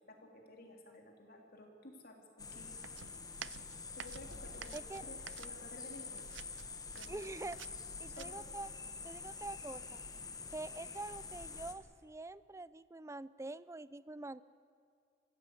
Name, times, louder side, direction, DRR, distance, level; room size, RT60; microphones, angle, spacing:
voice 1, 0.1-2.7 4.0-6.2 6.9-7.4 8.1-8.5, left 1 dB, 55° left, 2 dB, 3.4 m, -54 dB
sound 1, 2.4-11.7, left 4 dB, 20° left, 1.5 m, -47 dB
sound 2, 2.8-5.9 6.2-8.3, right 10 dB, 85° right, 0.4 m, -50 dB
voice 2, 4.7-5.0 7.1-7.6 8.0-8.7 9.0-10.0 10.5-14.4, right 2 dB, 15° right, 17 dB, 0.5 m, -45 dB
24.5 x 15.5 x 8.4 m, 2.3 s
head